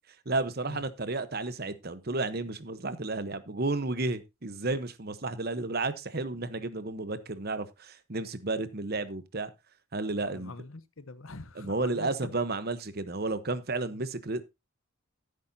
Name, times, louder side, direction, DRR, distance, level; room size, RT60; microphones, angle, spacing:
voice 1, 0.3-9.5 9.9-10.5 11.5-14.4, right 3 dB, 45° right, 1.0 m, -32 dB
voice 2, 10.3-12.3, left 3 dB, 70° left, 1.0 m, -44 dB
14.5 x 8.4 x 2.8 m
head